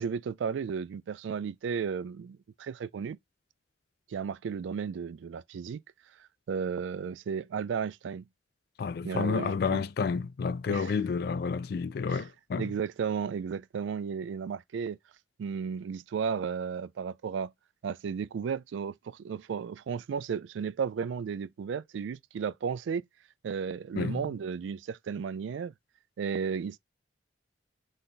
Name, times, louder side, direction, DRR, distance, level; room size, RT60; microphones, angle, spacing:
voice 1, 0.0-3.2 4.1-5.8 6.5-8.3 9.0-9.8 10.7-10.9 12.1-12.3 12.6-15.0 15.4-17.5 17.8-23.0 23.4-25.7 26.2-26.8, right 6 dB, 80° right, 0.3 m, -34 dB
voice 2, 8.8-12.7 24.0-24.2, left 5 dB, 55° left, 0.3 m, -30 dB
4.0 x 3.3 x 3.8 m
head